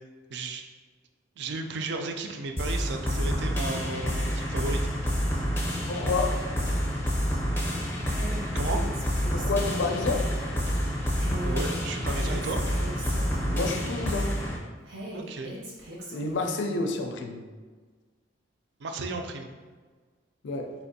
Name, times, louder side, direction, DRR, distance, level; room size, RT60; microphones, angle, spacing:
voice 1, 0.3-0.6 1.4-4.8 8.5-8.8 11.4-12.6 15.1-15.5 18.8-19.5, right 3 dB, 60° right, 5 dB, 0.3 m, -34 dB
sound 1, 2.6-14.6, equal, 15° left, 0.5 m, -28 dB
voice 2, 5.9-6.4 9.3-10.3 13.5-14.3 16.1-17.4 20.4-20.7, left 3 dB, 65° left, 4 dB, 0.4 m, -29 dB
Female speech woman speaking, 8.1-10.2 11.1-14.0 14.8-16.7, equal, 85° right, 0.8 m, -40 dB
4.2 x 2.5 x 2.6 m, 1.4 s
head